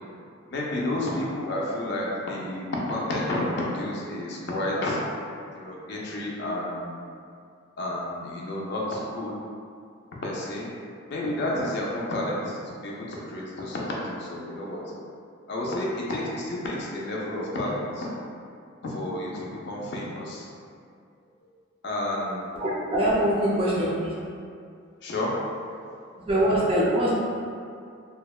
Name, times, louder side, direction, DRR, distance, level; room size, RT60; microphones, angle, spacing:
voice 1, 0.5-5.0 5.5-7.1 7.8-9.3 10.2-10.7 11.1-14.8 15.5-18.1 18.8-20.5 21.8-22.5 25.0-26.0, left 1 dB, 50° left, -4 dB, 0.4 m, -30 dB
voice 2, 22.6-24.1 26.3-27.1, right 1 dB, 25° right, -6 dB, 0.4 m, -23 dB
2.8 x 2.1 x 2.3 m, 2.3 s
head